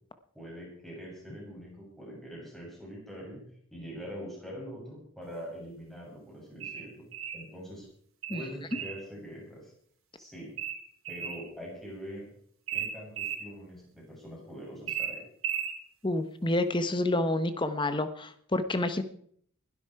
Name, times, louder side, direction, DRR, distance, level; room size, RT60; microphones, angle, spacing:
voice 1, 0.3-3.4 3.7-7.1 7.3-7.9 8.3-9.7 10.2-10.5 11.1-12.3 12.7-15.2, equal, ahead, -4 dB, 7.8 m, -43 dB
sound 1, 6.6-7.4 8.2-9.0 10.6-11.4 12.7-13.4 14.9-15.8, right 8 dB, 65° right, 3.9 m, -35 dB
voice 2, 16.0-19.0, left 2 dB, 20° left, 10 dB, 0.9 m, -28 dB
21.5 x 12.0 x 4.7 m, 0.62 s
head